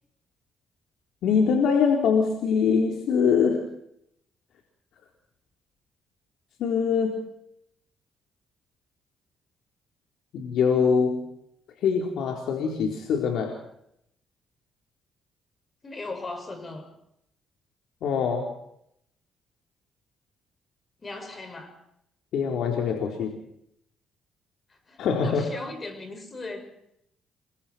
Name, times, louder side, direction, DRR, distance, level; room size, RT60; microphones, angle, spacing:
voice 1, 1.2-3.7 6.6-7.2 10.3-11.2 11.8-13.6 18.0-18.6 22.3-23.4 25.0-25.5, left 6 dB, 80° left, 1 dB, 4.1 m, -23 dB
voice 2, 15.8-16.9 21.0-21.8 24.9-26.6, left 3 dB, 30° left, 7 dB, 6.2 m, -38 dB
29.0 x 24.0 x 4.6 m, 0.75 s
cardioid pair, 90°, 0 cm